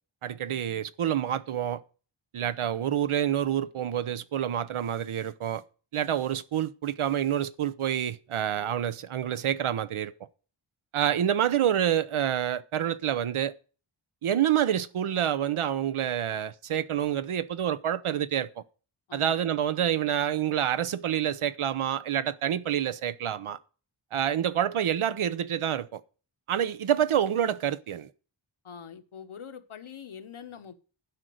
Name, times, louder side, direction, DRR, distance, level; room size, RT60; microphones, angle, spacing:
voice 1, 0.2-1.8 2.3-5.6 5.9-10.1 10.9-13.5 14.2-18.5 19.1-23.6 24.1-26.0 26.5-28.1, right 10 dB, 85° right, 0.7 m, -27 dB
voice 2, 28.6-30.8, left 7 dB, 85° left, 1.2 m, -44 dB
12.0 x 5.1 x 7.8 m
wide cardioid pair, 95°, 48 cm